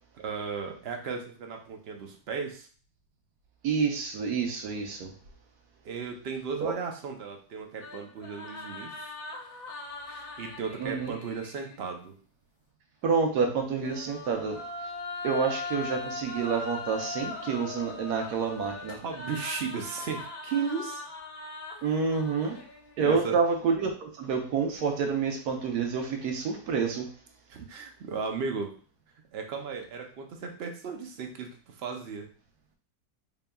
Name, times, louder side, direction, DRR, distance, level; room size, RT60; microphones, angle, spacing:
voice 1, 0.1-2.7 5.8-9.1 10.1-12.1 18.9-21.0 23.0-23.4 27.5-28.7 29.3-32.3, right 5 dB, 60° right, 3 dB, 0.6 m, -35 dB
voice 2, 3.6-5.1 6.6-6.7 10.8-11.1 13.0-14.6 15.2-19.0 21.8-22.6 23.0-27.1, right 5 dB, 80° right, 3 dB, 1.3 m, -28 dB
sound 1, 7.8-11.8 13.6-23.1, left 3 dB, 65° left, 1.0 m, -40 dB
4.0 x 3.6 x 2.2 m, 0.42 s
omnidirectional pair, 1.7 m